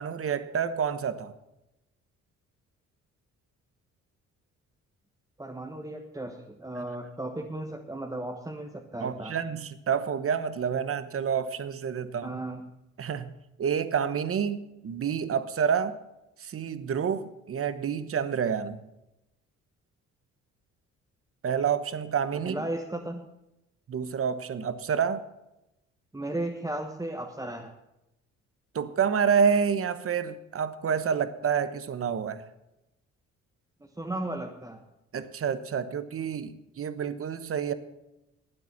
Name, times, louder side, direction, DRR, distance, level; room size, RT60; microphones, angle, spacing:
voice 1, 0.0-1.3 9.0-12.3 13.0-13.3 13.6-16.0 16.4-18.8 21.4-22.6 23.9-25.2 28.7-32.4 35.1-37.7, right 7 dB, 50° right, 13 dB, 1.1 m, -28 dB
voice 2, 5.4-9.3 12.2-12.6 22.4-23.2 26.1-27.7 34.0-34.8, right 1 dB, 10° right, 2 dB, 1.3 m, -35 dB
12.5 x 9.2 x 7.4 m, 0.90 s
cardioid pair, 90°, 30 cm